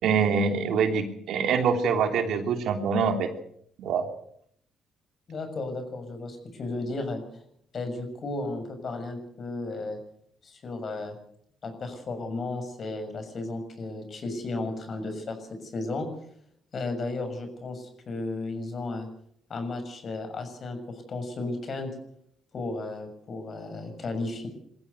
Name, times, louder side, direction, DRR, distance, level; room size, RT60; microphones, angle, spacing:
voice 1, 0.0-3.3 3.8-4.1, right 6 dB, 75° right, 6 dB, 3.1 m, -25 dB
voice 2, 5.3-7.4 7.7-10.0 10.4-11.1 11.6-16.1 16.7-19.1 19.5-21.9 22.5-24.5, left 2 dB, 50° left, 8 dB, 6.7 m, -34 dB
22.5 x 15.5 x 8.3 m, 0.70 s
cardioid pair, 90°, 0 cm